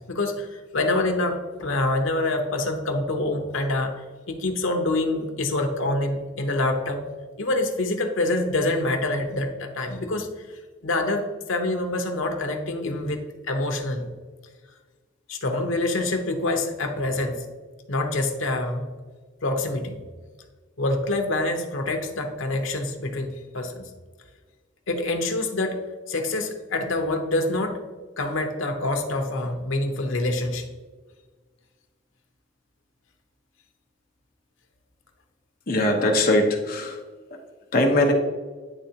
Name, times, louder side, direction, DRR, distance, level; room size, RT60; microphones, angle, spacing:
voice 1, 0.1-3.9 4.3-7.1 7.4-10.3 10.8-11.2 11.5-14.1 15.3-17.5 17.9-18.9 19.4-20.0 20.8-23.9 24.9-25.8 26.1-27.8 28.2-30.7 36.0-36.1, left 2 dB, 90° left, 5 dB, 0.9 m, -26 dB
voice 2, 35.7-36.9 37.7-38.1, left 1 dB, 50° left, 1 dB, 1.0 m, -20 dB
10.0 x 3.5 x 2.8 m, 1.4 s
head